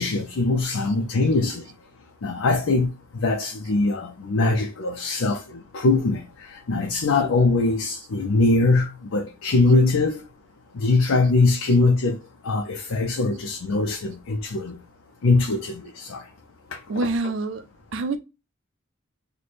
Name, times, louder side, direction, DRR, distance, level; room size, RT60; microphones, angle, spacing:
voice 1, 0.0-1.7 2.2-2.9 3.2-10.2 10.7-12.2 12.4-14.8 15.2-16.2 16.7-16.8, left 3 dB, 90° left, 0.5 m, -22 dB
voice 2, 16.9-17.7 17.9-18.2, right 3 dB, 65° right, 0.5 m, -26 dB
3.2 x 2.2 x 4.0 m
head